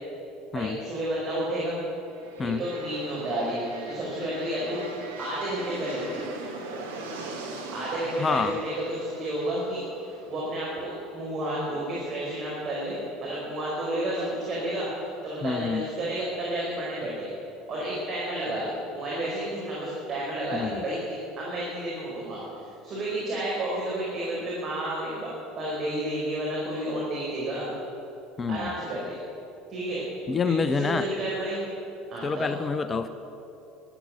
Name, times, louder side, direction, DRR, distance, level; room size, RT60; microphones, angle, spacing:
voice 1, 0.5-1.8 2.4-4.8 5.2-6.2 7.7-14.9 15.2-17.3 17.7-25.3 25.6-27.7 28.5-29.2 29.7-30.0 30.4-31.6 32.1-32.5, right 1 dB, 40° right, -6 dB, 4.7 m, -31 dB
sound 1, 2.0-11.8, right 3 dB, 75° right, 2.0 m, -41 dB
voice 2, 8.2-8.6 15.4-15.9 20.5-20.8 28.4-28.8 30.3-31.1 32.2-33.1, left 5 dB, 25° left, 11 dB, 0.7 m, -27 dB
13.0 x 12.0 x 8.6 m, 2.8 s
figure-of-eight pair, 65°, 0 cm